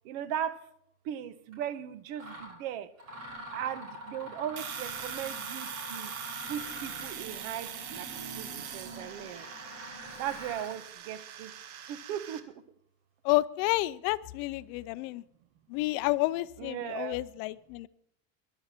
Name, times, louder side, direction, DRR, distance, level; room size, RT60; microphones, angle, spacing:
voice 1, 0.0-0.6 1.0-2.9 3.5-6.1 6.4-8.1 8.3-9.5 10.2-11.5 11.9-12.6 16.6-17.2, right 10 dB, 65° right, 14 dB, 1.3 m, -37 dB
Mechanisms, 1.5-1.7 2.2-2.5 3.0-10.8, right 1 dB, 35° right, 6.4 m, -44 dB
Domestic sounds home sounds, 4.6-12.4, right 10 dB, 85° right, 1.9 m, -43 dB
voice 2, 13.2-15.2 15.7-17.9, left 19 dB, 55° left, 16 dB, 0.6 m, -30 dB
19.5 x 12.0 x 4.4 m, 0.73 s
cardioid pair, 165°, 41 cm